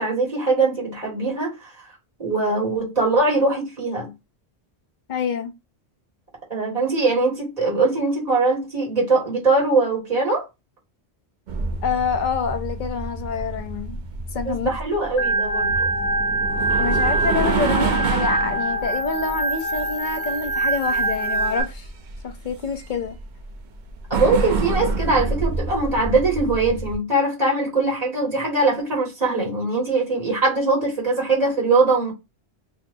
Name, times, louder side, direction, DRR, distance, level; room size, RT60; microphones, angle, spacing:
voice 1, 0.0-1.7 2.2-4.1 6.5-10.5 14.5-15.9 24.1-32.1, right 3 dB, 35° right, 1.9 m, -21 dB
voice 2, 5.1-5.5 11.8-14.0 14.3-14.8 16.8-21.9 22.2-23.2, left 6 dB, 50° left, 0.7 m, -27 dB
sound 1, 11.5-27.0, right 3 dB, 50° right, 0.7 m, -28 dB
Organ, 15.2-21.6, right 2 dB, 85° left, 1.1 m, -24 dB
4.6 x 2.5 x 2.6 m
omnidirectional pair, 1.1 m